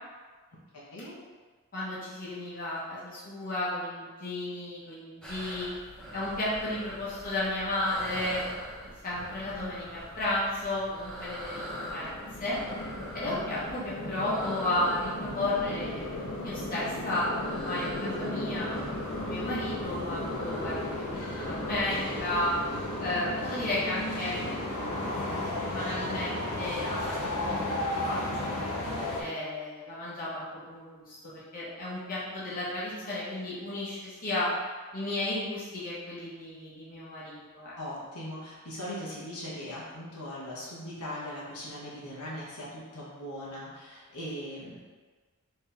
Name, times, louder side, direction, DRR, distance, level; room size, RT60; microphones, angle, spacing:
voice 1, 0.7-1.2 37.8-44.8, equal, 85° left, -6 dB, 1.1 m, -40 dB
voice 2, 1.7-5.7 6.1-8.5 8.8-12.6 13.1-18.8 19.2-22.6 23.0-28.5 29.1-34.5 34.9-37.7, left 1 dB, 40° left, -9 dB, 1.3 m, -33 dB
sound 1, 5.2-22.9, equal, 5° left, 0.7 m, -43 dB
sound 2, 11.5-29.2, left 1 dB, 70° left, 0.7 m, -34 dB
4.5 x 3.2 x 3.4 m, 1.4 s
head